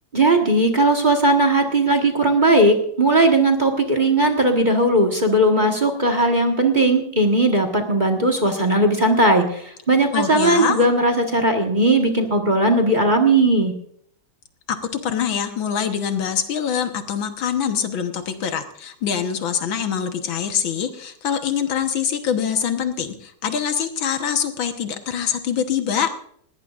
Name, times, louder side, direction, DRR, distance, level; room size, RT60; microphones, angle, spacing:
voice 1, 0.1-13.7, right 2 dB, 25° right, 4 dB, 1.5 m, -18 dB
voice 2, 10.1-10.8 14.7-26.1, left 8 dB, 80° left, 7 dB, 2.0 m, -24 dB
20.0 x 17.5 x 2.5 m, 0.66 s
omnidirectional pair, 2.1 m